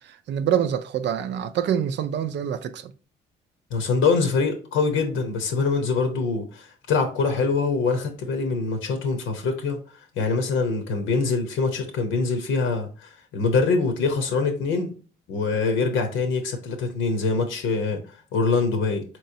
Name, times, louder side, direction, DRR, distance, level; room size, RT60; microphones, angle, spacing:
voice 1, 0.3-2.9, right 9 dB, 65° right, 0.4 m, -25 dB
voice 2, 3.7-9.8 10.2-12.9 13.3-14.9 15.3-18.0 18.3-19.0, left 4 dB, 85° left, 0.9 m, -24 dB
4.2 x 3.1 x 2.6 m
cardioid pair, 90°, 20 cm